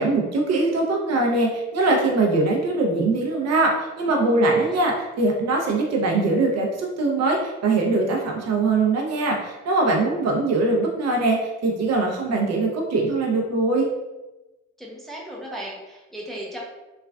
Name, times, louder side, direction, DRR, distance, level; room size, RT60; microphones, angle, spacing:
voice 1, 0.0-13.9, right 2 dB, 60° right, 0 dB, 0.6 m, -22 dB
voice 2, 4.4-4.9 14.8-16.6, right 1 dB, ahead, -4 dB, 0.7 m, -36 dB
3.2 x 2.3 x 2.3 m, 1.1 s
cardioid pair, 90°, 30 cm